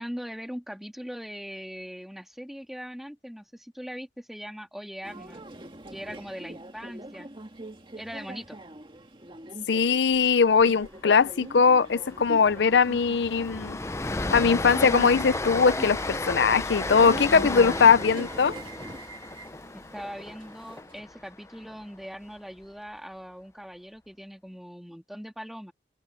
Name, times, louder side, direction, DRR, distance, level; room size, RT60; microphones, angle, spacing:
voice 1, 0.0-5.5 5.9-7.3 8.0-8.6 19.7-25.7, equal, ahead, 1.7 m, -40 dB
Subway metro underground, 5.0-21.0, right 1 dB, 30° right, 2.0 m, -42 dB
voice 2, 9.7-13.8 14.1-18.5, left 5 dB, 85° left, 0.5 m, -21 dB
Train, 10.6-10.9 11.1-11.3 11.7-21.8, left 2 dB, 15° left, 0.5 m, -34 dB
open air
head